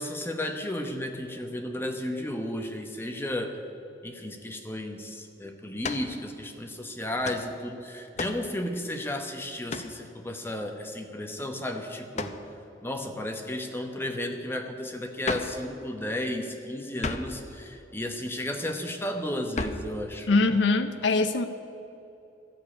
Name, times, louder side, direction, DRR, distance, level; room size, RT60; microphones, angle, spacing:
voice 1, 0.0-3.5 4.0-12.3 12.8-20.3, left 1 dB, 15° left, 4 dB, 0.9 m, -33 dB
sound 1, 5.8-6.1 7.2-7.5 8.2-8.5 9.7-10.0 12.1-12.5 15.2-15.6 17.0-17.4 19.5-19.9, left 3 dB, 40° left, 0.6 m, -33 dB
voice 2, 20.3-21.5, left 3 dB, 85° left, 9 dB, 0.5 m, -23 dB
13.5 x 6.9 x 9.8 m, 2.8 s
head